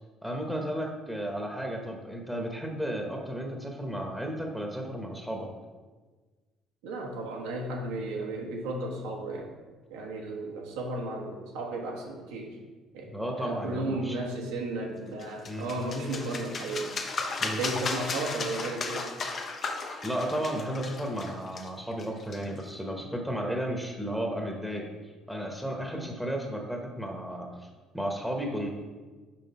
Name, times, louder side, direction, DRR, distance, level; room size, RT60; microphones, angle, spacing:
voice 1, 0.2-5.5 13.1-14.2 15.5-15.7 17.4-17.6 20.0-24.9 25.3-27.7 27.9-28.7, equal, ahead, 2 dB, 1.0 m, -33 dB
voice 2, 6.8-9.5 9.9-12.6 12.9-16.9 17.4-19.1, right 2 dB, 90° right, 0 dB, 1.1 m, -34 dB
sound 1, 15.2-22.7, left 4 dB, 45° left, 0.8 m, -35 dB
6.0 x 4.9 x 4.2 m, 1.4 s
supercardioid pair, 75°, 0 cm